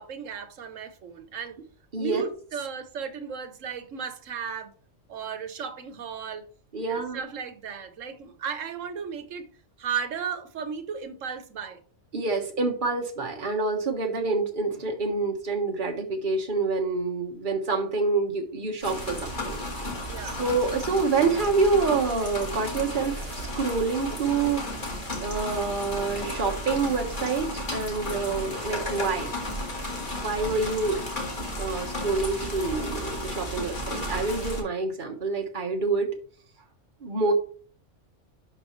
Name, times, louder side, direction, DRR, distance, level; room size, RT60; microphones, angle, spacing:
voice 1, 0.0-1.6 2.0-4.7 5.1-6.5 6.9-9.5 9.8-11.8 20.1-20.4, right 6 dB, 85° right, 1.3 m, -35 dB
voice 2, 6.7-7.2 12.1-19.6 20.4-24.6 25.2-29.3 30.2-31.0 31.6-36.1 37.0-37.3, right 4 dB, 40° right, 1.4 m, -27 dB
sound 1, 18.8-34.6, left 1 dB, 40° left, 2.1 m, -33 dB
11.5 x 4.2 x 3.1 m
omnidirectional pair, 1.3 m